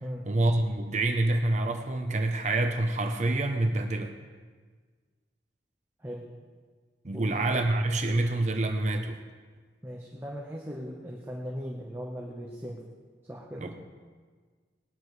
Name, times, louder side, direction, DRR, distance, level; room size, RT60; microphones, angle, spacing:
voice 1, 0.3-4.1 7.0-9.2 13.6-13.8, right 2 dB, 40° right, 5 dB, 0.8 m, -27 dB
voice 2, 9.8-12.8 13.3-13.7, equal, 15° right, -3 dB, 1.1 m, -38 dB
20.0 x 11.5 x 3.3 m, 1.5 s
head